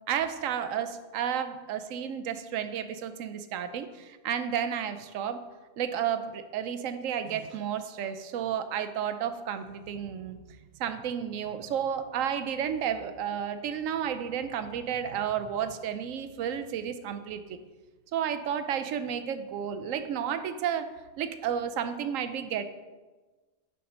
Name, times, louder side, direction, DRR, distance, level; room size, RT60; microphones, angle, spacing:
voice 1, 0.1-5.4 5.8-10.4 10.8-17.6 18.1-20.9 21.2-22.7, right 8 dB, 75° right, 10 dB, 0.9 m, -32 dB
6.9 x 5.0 x 5.3 m, 1.3 s
omnidirectional pair, 1.5 m